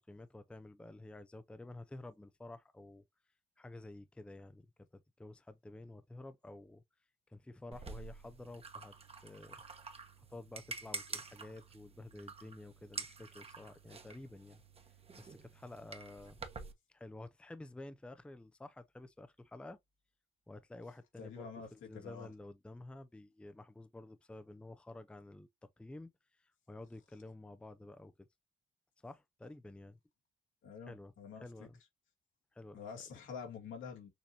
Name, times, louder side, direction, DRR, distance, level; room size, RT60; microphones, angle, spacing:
voice 1, 0.1-3.0 3.6-6.8 7.3-9.6 10.3-14.6 15.2-16.4 16.9-19.8 20.5-28.3 29.0-30.0 30.9-31.8 32.5-33.0, left 2 dB, 5° left, 0.5 m, -51 dB
sound 1, 7.7-16.7, right 4 dB, 30° right, 1.1 m, -48 dB
voice 2, 21.2-21.7 21.9-22.3 30.6-31.4 32.7-34.1, left 6 dB, 80° left, 2.3 m, -47 dB
6.7 x 2.7 x 2.8 m
cardioid pair, 90°, 20 cm